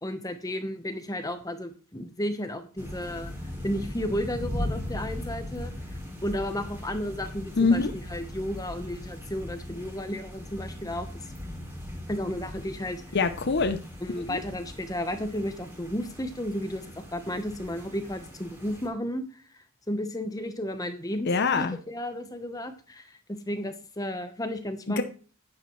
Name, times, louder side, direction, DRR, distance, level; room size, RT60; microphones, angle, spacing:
voice 1, 0.0-3.3 3.6-5.7 6.2-7.9 8.1-11.1 12.1-13.0 14.0-19.4 19.9-25.0, left 1 dB, 15° left, 8 dB, 1.0 m, -33 dB
sound 1, 2.8-18.9, left 1 dB, 10° right, 2.5 m, -39 dB
voice 2, 7.6-7.9 13.1-13.8 14.3-14.4 21.3-21.8 24.9-25.0, left 4 dB, 50° left, 8 dB, 0.6 m, -24 dB
10.5 x 9.7 x 3.1 m, 0.38 s
head